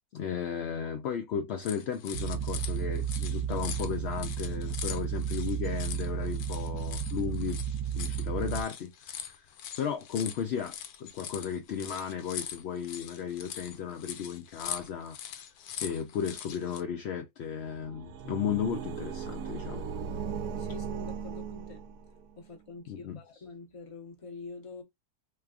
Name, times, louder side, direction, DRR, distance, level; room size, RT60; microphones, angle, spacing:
voice 1, 0.1-7.6 8.0-9.5 9.8-15.4 15.8-19.9 22.9-23.2, left 8 dB, 70° left, 0.6 m, -35 dB
sound 1, 1.6-16.8, left 9 dB, 85° left, 1.1 m, -42 dB
sound 2, 2.1-8.6, right 8 dB, 65° right, 1.0 m, -33 dB
sound 3, 17.6-22.2, right 6 dB, 90° right, 1.2 m, -38 dB
voice 2, 20.6-21.8 22.4-24.8, left 4 dB, 25° left, 0.8 m, -46 dB
3.3 x 3.3 x 2.3 m
omnidirectional pair, 1.6 m